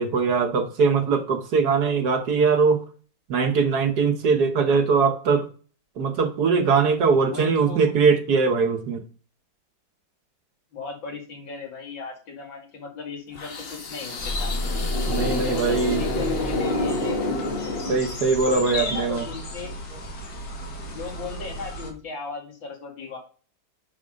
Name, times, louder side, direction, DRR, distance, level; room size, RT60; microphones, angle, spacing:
voice 1, 0.0-2.8 3.3-5.5 6.0-9.0 15.1-16.0 17.9-19.3, right 5 dB, 60° right, 1.3 m, -21 dB
voice 2, 7.3-7.9 10.7-14.7 15.3-17.3 18.4-20.0 20.9-23.2, left 4 dB, 75° left, 3.0 m, -37 dB
sound 1, 13.4-18.4, left 2 dB, 35° left, 1.1 m, -29 dB
sound 2, 14.2-21.9, left 1 dB, 55° left, 2.2 m, -32 dB
10.0 x 4.2 x 5.1 m
omnidirectional pair, 2.1 m